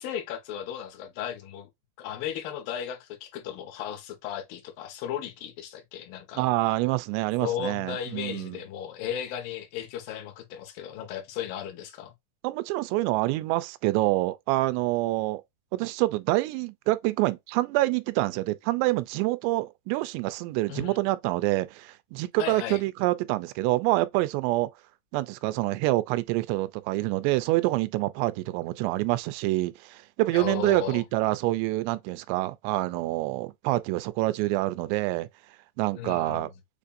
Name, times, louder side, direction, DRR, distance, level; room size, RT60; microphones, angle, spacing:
voice 1, 0.0-1.7 2.0-6.7 7.4-12.1 20.7-21.0 22.4-22.8 30.3-31.0 36.0-36.5, left 9 dB, 70° left, 2.6 m, -35 dB
voice 2, 6.4-8.6 12.4-15.4 15.7-24.7 25.1-35.3 35.8-36.5, right 19 dB, 90° right, 2.7 m, -26 dB
7.1 x 2.6 x 2.4 m
omnidirectional pair, 4.8 m